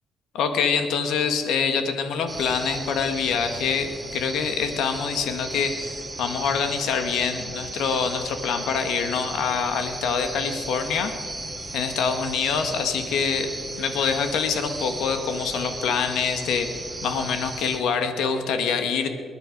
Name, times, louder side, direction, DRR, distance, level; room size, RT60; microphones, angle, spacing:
voice 1, 0.3-11.1 11.7-13.5 13.8-16.7 17.0-19.1, left 6 dB, 85° left, 7 dB, 1.5 m, -25 dB
sound 1, 2.3-17.8, right 2 dB, 20° right, 2.0 m, -35 dB
21.0 x 10.5 x 5.2 m, 2.1 s
cardioid pair, 90°, 0 cm